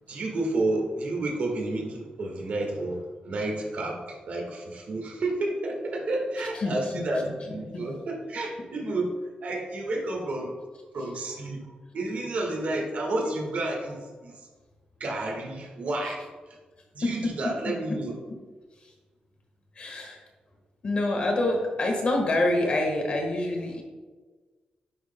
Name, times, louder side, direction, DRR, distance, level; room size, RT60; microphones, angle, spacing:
voice 1, 0.1-9.1 9.4-10.6 10.9-14.5 15.0-16.6 16.9-18.2, right 2 dB, 60° right, 0 dB, 1.5 m, -31 dB
voice 2, 6.6-7.0 7.7-7.9 17.0-17.3 17.6-18.0 18.3-18.4 18.8-18.9 19.7-20.2 20.8-23.8, left 2 dB, 45° left, 2 dB, 1.4 m, -27 dB
9.4 x 6.1 x 2.2 m, 1.4 s
wide cardioid pair, 140°, 3 cm